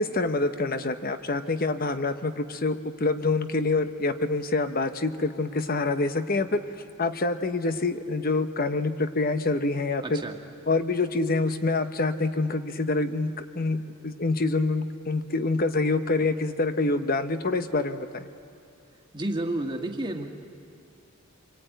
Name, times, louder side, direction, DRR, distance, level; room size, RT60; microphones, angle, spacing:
voice 1, 0.0-6.6 7.0-10.2 10.7-18.3, left 3 dB, 45° left, 10 dB, 1.0 m, -26 dB
voice 2, 10.0-10.3 19.1-20.2, right 1 dB, 20° right, 3 dB, 1.6 m, -30 dB
25.5 x 23.0 x 9.2 m, 2.5 s
head